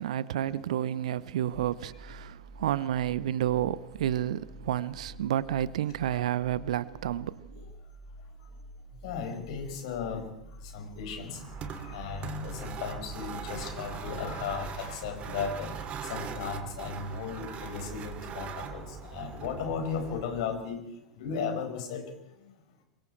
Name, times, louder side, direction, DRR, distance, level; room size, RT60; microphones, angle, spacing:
voice 1, 0.0-7.4, right 11 dB, 60° right, 0.8 m, -30 dB
sound 1, 1.5-14.9, right 1 dB, 5° right, 5.1 m, -48 dB
voice 2, 9.0-10.2 10.6-20.8 21.1-22.0, left 6 dB, 55° left, 4.9 m, -36 dB
sound 2, 11.2-20.6, right 7 dB, 30° right, 2.5 m, -40 dB
27.5 x 23.5 x 4.6 m
figure-of-eight pair, 90°, 4 cm